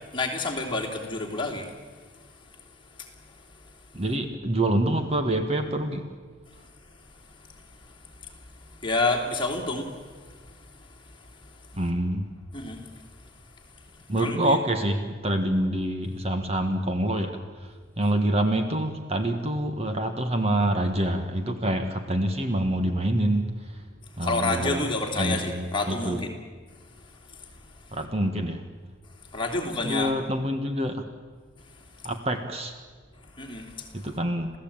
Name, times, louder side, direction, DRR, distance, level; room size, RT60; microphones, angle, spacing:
voice 1, 0.1-1.7 3.0-3.6 6.5-6.6 7.4-11.7 12.5-12.8 14.1-14.6 24.2-26.3 27.0-27.4 29.3-30.1 31.7-31.8 33.3-34.1, left 2 dB, 25° left, 1 dB, 3.0 m, -30 dB
voice 2, 3.9-6.1 11.7-12.3 14.1-23.8 24.2-24.9 25.2-26.2 27.9-28.6 29.8-31.0 32.0-32.8 33.9-34.5, right 1 dB, 30° right, 6 dB, 1.4 m, -26 dB
27.5 x 16.0 x 8.8 m, 1.5 s
head